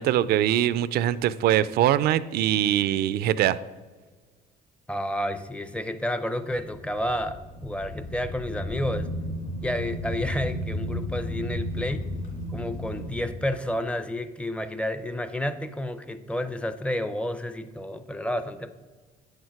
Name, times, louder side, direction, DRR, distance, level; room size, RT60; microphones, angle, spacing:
voice 1, 0.0-3.6, right 12 dB, 65° right, 16 dB, 0.4 m, -22 dB
voice 2, 4.9-9.1 9.6-12.1 12.5-18.7, left 1 dB, 5° left, 10 dB, 0.5 m, -30 dB
sound 1, 6.6-13.3, equal, 50° left, 2.9 m, -33 dB
8.9 x 6.5 x 4.7 m, 1.3 s
cardioid pair, 110°, 17 cm